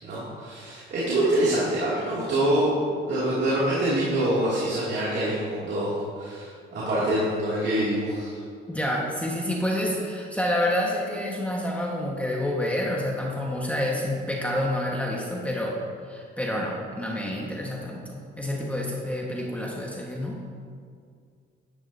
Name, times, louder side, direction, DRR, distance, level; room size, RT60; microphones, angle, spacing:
voice 1, 0.0-2.7 3.1-8.4, right 1 dB, 65° right, -9 dB, 2.6 m, -25 dB
voice 2, 8.7-15.7 16.1-20.4, left 1 dB, 5° left, -3 dB, 1.4 m, -28 dB
11.5 x 9.6 x 2.8 m, 2.2 s
cardioid pair, 90°, 20 cm